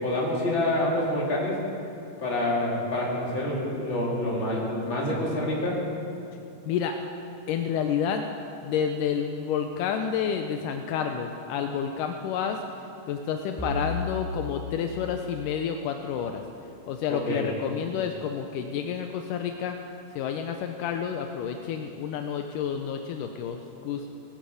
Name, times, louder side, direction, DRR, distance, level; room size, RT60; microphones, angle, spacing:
voice 1, 0.0-1.6 2.2-5.8 17.1-17.4, left 1 dB, 35° left, -5 dB, 3.9 m, -27 dB
voice 2, 7.5-8.2 8.6-12.6 13.1-16.4 16.9-19.8 20.2-24.1, left 7 dB, 80° left, 5 dB, 2.3 m, -29 dB
sound 1, 13.6-16.2, left 2 dB, 5° left, 3.1 m, -36 dB
19.5 x 14.5 x 5.1 m, 2.6 s
omnidirectional pair, 3.8 m